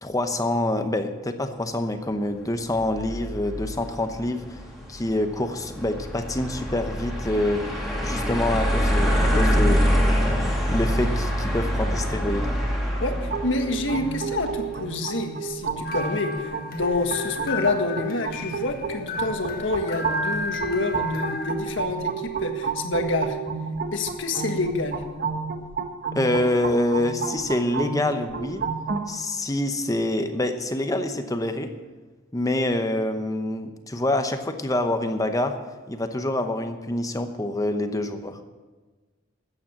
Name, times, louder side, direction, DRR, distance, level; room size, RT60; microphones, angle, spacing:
voice 1, 0.0-4.6 4.9-7.6 8.0-9.9 10.7-12.5 26.1-28.6 29.1-31.7 32.3-35.6 35.9-38.4, left 1 dB, 15° left, 7 dB, 0.8 m, -26 dB
sound 1, 2.7-14.9, equal, ahead, 2.8 m, -25 dB
voice 2, 13.0-23.4 23.9-25.0, left 2 dB, 70° left, 5 dB, 1.6 m, -27 dB
sound 2, 13.3-29.1, right 5 dB, 50° right, 1.3 m, -31 dB
sound 3, 15.8-21.5, left 3 dB, 50° left, 1.4 m, -34 dB
13.5 x 9.0 x 7.2 m, 1.3 s
head